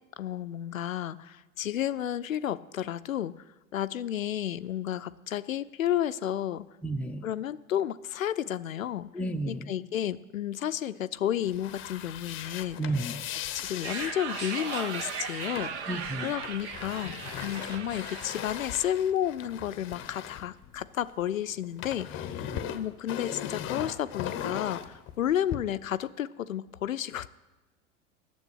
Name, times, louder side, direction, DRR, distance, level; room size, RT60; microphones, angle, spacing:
voice 1, 0.2-3.4 3.7-6.7 7.2-9.1 9.5-12.8 13.5-15.9 16.2-27.3, left 11 dB, 80° left, 14 dB, 0.5 m, -32 dB
voice 2, 6.8-7.3 9.1-9.7 12.8-13.2 15.9-16.3 22.5-22.6, right 2 dB, 5° left, 5 dB, 0.5 m, -32 dB
sound 1, 11.4-21.2 21.5-25.6, left 10 dB, 30° left, 0.8 m, -39 dB
sound 2, 13.8-19.0, right 6 dB, 55° right, 1.1 m, -38 dB
9.2 x 7.3 x 7.7 m, 1.2 s
figure-of-eight pair, 85°, 40 cm